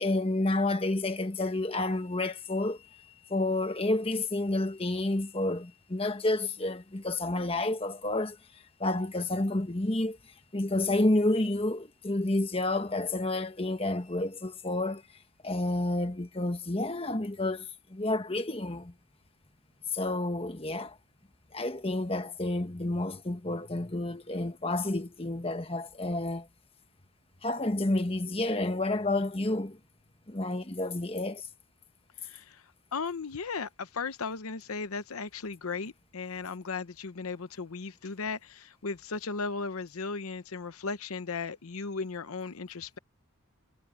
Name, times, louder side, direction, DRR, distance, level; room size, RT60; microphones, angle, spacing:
voice 1, 0.0-2.8 3.3-8.4 8.8-10.2 10.5-15.0 15.4-18.9 19.9-20.9 21.5-26.5 27.4-29.8 30.3-31.5, left 2 dB, 25° left, 1.2 m, -30 dB
voice 2, 32.2-32.6 32.9-43.0, left 4 dB, 85° left, 0.8 m, -36 dB
head